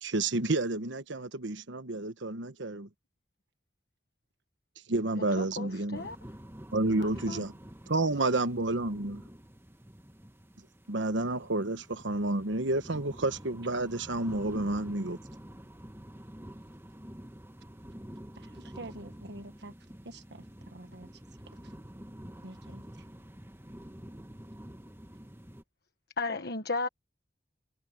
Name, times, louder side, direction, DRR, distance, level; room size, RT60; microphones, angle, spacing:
voice 1, 0.0-2.9 4.9-6.0 6.7-7.5 7.9-9.2 10.9-15.2, right 2 dB, 80° right, 1.2 m, -30 dB
voice 2, 5.2-6.2 6.9-7.5 26.2-26.9, left 3 dB, 60° left, 1.4 m, -35 dB
sound 1, 5.9-25.6, equal, 15° right, 1.7 m, -48 dB
voice 3, 18.4-19.7 20.0-20.4 20.7-21.1 22.4-22.8, right 2 dB, 65° right, 1.6 m, -46 dB
head